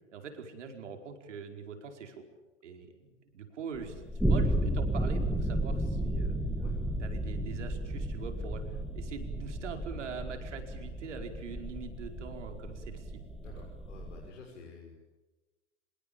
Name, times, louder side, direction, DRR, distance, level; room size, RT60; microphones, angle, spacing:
voice 1, 0.1-2.3 2.6-6.4 7.0-13.7, right 5 dB, 70° right, 5 dB, 4.9 m, -43 dB
sound 1, 3.8-14.3, right 1 dB, ahead, 2.1 m, -33 dB
voice 2, 13.4-15.0, left 4 dB, 75° left, -1 dB, 6.3 m, -50 dB
25.5 x 22.5 x 8.8 m, 1.1 s
hypercardioid pair, 120°, 37 cm